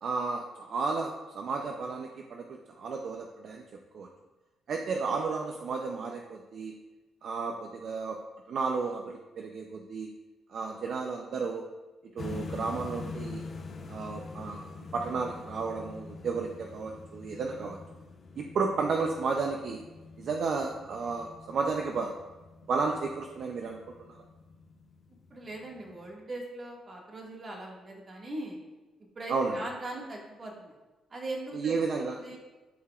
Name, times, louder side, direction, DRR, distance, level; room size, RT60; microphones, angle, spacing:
voice 1, 0.0-3.6 3.9-4.1 4.7-6.7 7.2-8.2 8.5-10.1 10.5-11.6 12.1-13.4 13.9-14.6 14.9-17.8 18.4-19.8 20.2-22.1 22.7-24.2 29.3-29.6 31.5-32.4, right 4 dB, 60° right, 2 dB, 0.6 m, -32 dB
sound 1, 12.2-26.2, left 4 dB, 45° left, 0.7 m, -45 dB
voice 2, 25.3-28.6 29.2-30.7 31.1-31.8 32.2-32.4, right 2 dB, 40° right, -2 dB, 1.8 m, -40 dB
11.5 x 4.8 x 2.4 m, 1.2 s
cardioid pair, 90°, 0 cm